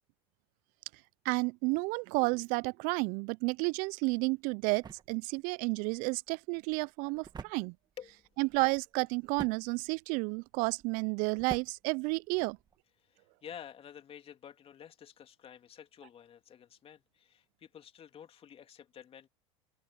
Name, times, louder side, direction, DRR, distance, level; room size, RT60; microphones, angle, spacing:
voice 1, 1.2-7.7 8.4-12.6, right 29 dB, 55° right, 0.6 m, -31 dB
sound 1, 4.0-12.8, right 6 dB, 25° right, 2.1 m, -50 dB
voice 2, 13.0-19.3, left 9 dB, 35° left, 2.7 m, -51 dB
open air
hypercardioid pair, 85°, 17 cm